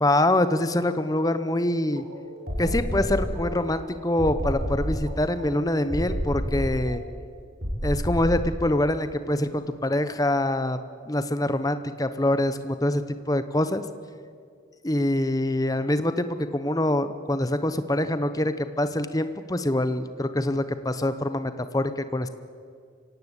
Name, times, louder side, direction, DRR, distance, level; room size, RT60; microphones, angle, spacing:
voice 1, 0.0-2.0 2.6-7.0 7.8-10.8 11.1-13.8 14.8-22.3, left 1 dB, 20° left, 11 dB, 0.9 m, -25 dB
sound 1, 1.8-3.7 4.2-7.0 7.6-8.5, equal, 50° right, 5.9 m, -30 dB
25.5 x 17.0 x 8.2 m, 2.1 s
head